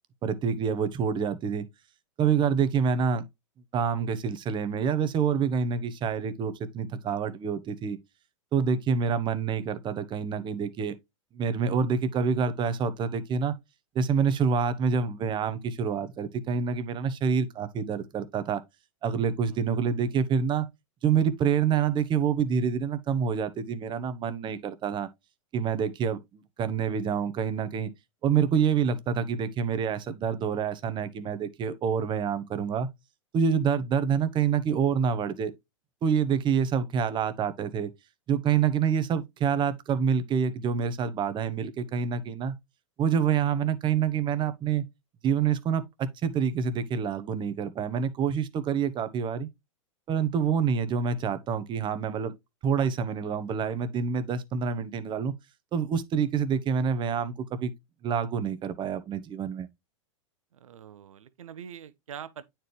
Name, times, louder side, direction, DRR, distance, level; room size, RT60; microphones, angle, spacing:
voice 1, 0.2-1.7 2.2-3.2 3.7-8.0 8.5-11.0 11.3-13.5 13.9-18.6 19.0-20.7 21.0-25.1 25.5-27.9 28.2-32.9 33.3-35.5 36.0-37.9 38.3-42.6 43.0-44.8 45.2-49.5 50.1-52.3 52.6-55.3 55.7-57.7 58.0-59.7, right 6 dB, 30° right, 0.9 m, -27 dB
voice 2, 60.5-62.4, right 8 dB, 85° right, 0.8 m, -44 dB
9.1 x 4.5 x 3.2 m
hypercardioid pair, 115°, 17 cm